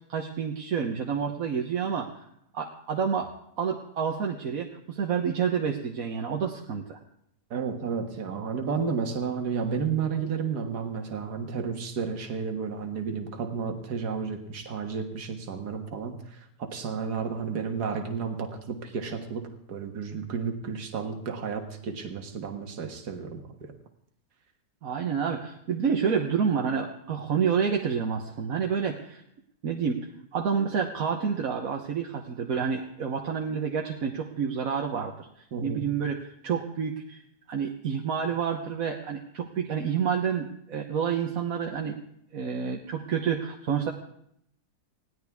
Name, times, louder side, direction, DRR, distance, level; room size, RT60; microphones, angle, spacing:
voice 1, 0.1-2.2 2.5-3.3 3.6-7.0 24.8-29.2 29.6-37.2 37.5-42.0 42.3-43.9, right 7 dB, 60° right, 2 dB, 1.4 m, -29 dB
voice 2, 7.5-23.7 35.5-35.9, right 6 dB, 80° right, 5 dB, 2.0 m, -32 dB
20.5 x 16.0 x 3.6 m, 0.72 s
omnidirectional pair, 1.7 m